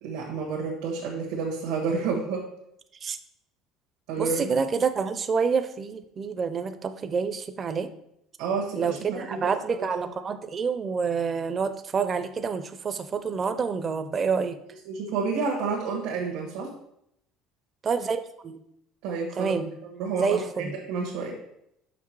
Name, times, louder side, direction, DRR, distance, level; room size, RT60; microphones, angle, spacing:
voice 1, 0.0-2.5 4.1-4.6 8.4-9.9 14.9-16.7 19.0-19.5 19.8-21.4, right 4 dB, 85° right, -3 dB, 1.4 m, -30 dB
voice 2, 4.2-7.9 8.8-14.6 17.8-18.6 19.4-19.7 20.2-20.8, right 5 dB, 25° right, 11 dB, 0.4 m, -28 dB
5.9 x 5.7 x 4.7 m, 0.77 s
cardioid pair, 160°, 0 cm